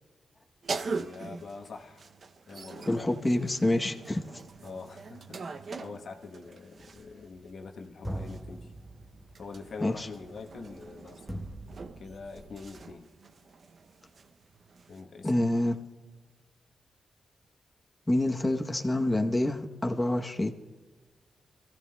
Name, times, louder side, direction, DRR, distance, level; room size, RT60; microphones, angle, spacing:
sound 1, 0.6-7.2 8.2-15.0, right 4 dB, 50° right, 0.5 m, -42 dB
voice 1, 0.7-2.0 2.5-3.6 4.6-8.7 9.4-11.5 12.0-13.1 14.9-15.3, left 4 dB, 65° left, 1.0 m, -44 dB
voice 2, 2.9-4.2 9.8-10.1 15.2-15.8 18.1-20.5, left 1 dB, 15° left, 0.8 m, -27 dB
sound 2, 6.7-7.7 8.0-12.9, right 1 dB, 10° right, 1.1 m, -42 dB
27.0 x 14.5 x 2.2 m
cardioid pair, 100°, 0 cm